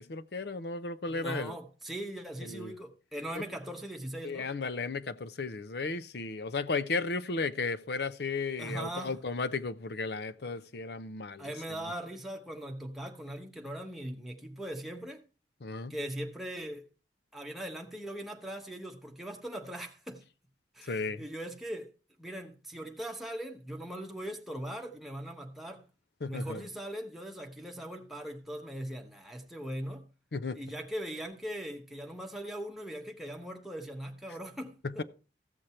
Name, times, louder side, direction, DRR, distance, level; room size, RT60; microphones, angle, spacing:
voice 1, 0.0-1.5 2.4-2.7 3.3-3.4 4.2-11.5 15.6-15.9 20.9-21.2 26.2-26.6 30.3-30.6 34.8-35.0, left 4 dB, 65° left, 0.6 m, -34 dB
voice 2, 1.0-4.5 8.6-9.2 11.4-15.2 15.9-16.9 17.3-20.2 20.7-21.9 22.2-25.8 26.3-30.1 30.5-35.0, right 1 dB, ahead, 1.1 m, -40 dB
15.0 x 6.5 x 4.3 m
head